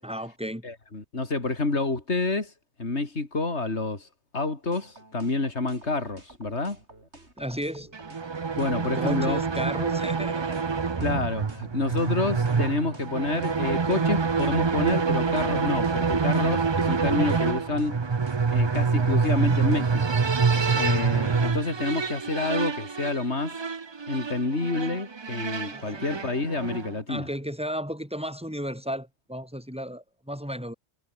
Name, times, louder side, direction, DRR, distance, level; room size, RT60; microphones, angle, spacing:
voice 1, 0.0-0.6 7.4-7.9 8.9-10.6 25.6-26.2 27.1-30.7, equal, 5° right, 7.8 m, -34 dB
voice 2, 0.6-2.5 2.8-4.1 4.3-6.8 8.6-9.4 11.0-18.0 18.5-23.6 24.1-27.3, left 3 dB, 80° left, 3.7 m, -28 dB
sound 1, 4.7-20.1, right 2 dB, 80° right, 6.0 m, -51 dB
sound 2, 7.9-27.0, right 5 dB, 30° right, 0.6 m, -26 dB
omnidirectional pair, 1.1 m